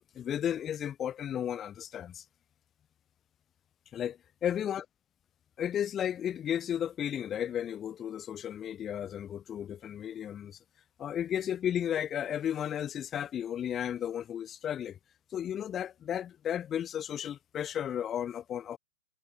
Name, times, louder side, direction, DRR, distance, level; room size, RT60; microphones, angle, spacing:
voice 1, 0.0-2.2 3.9-4.2 4.4-4.8 5.6-10.6 11.0-15.0 15.3-18.8, left 10 dB, 20° left, 1.3 m, -34 dB
figure-of-eight pair, 105°, 0 cm